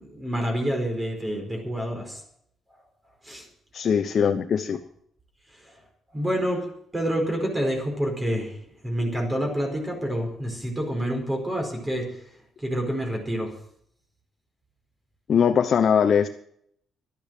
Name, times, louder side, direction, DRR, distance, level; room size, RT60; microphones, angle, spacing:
voice 1, 0.0-2.2 3.2-3.4 6.1-6.6 6.9-8.5 8.8-12.1 12.6-13.5, equal, 20° right, 2 dB, 4.7 m, -27 dB
voice 2, 3.7-4.8 15.3-16.3, left 7 dB, 55° left, 6 dB, 1.0 m, -21 dB
12.5 x 10.0 x 7.7 m, 0.68 s
cardioid pair, 90°, 0 cm